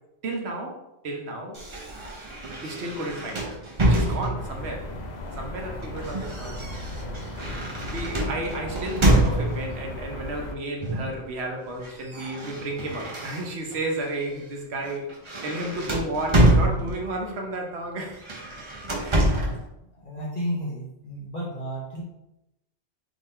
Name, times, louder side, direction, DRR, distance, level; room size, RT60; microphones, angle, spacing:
voice 1, 0.2-1.6 2.6-3.6 3.9-4.9 5.4-6.6 7.9-15.1 15.4-18.2 19.0-19.4, right 1 dB, 60° right, 1 dB, 1.1 m, -32 dB
sound 1, 1.5-4.6 5.6-9.8 10.8-11.2 11.5-13.8 14.3-14.5 14.8-17.2 18.1-19.6, right 1 dB, 30° right, 0.6 m, -26 dB
sound 2, 4.4-10.5, left 1 dB, 60° left, 0.4 m, -36 dB
voice 2, 19.2-19.7 19.9-22.0, equal, 40° left, -6 dB, 0.8 m, -33 dB
3.8 x 3.0 x 4.2 m, 0.88 s
omnidirectional pair, 1.2 m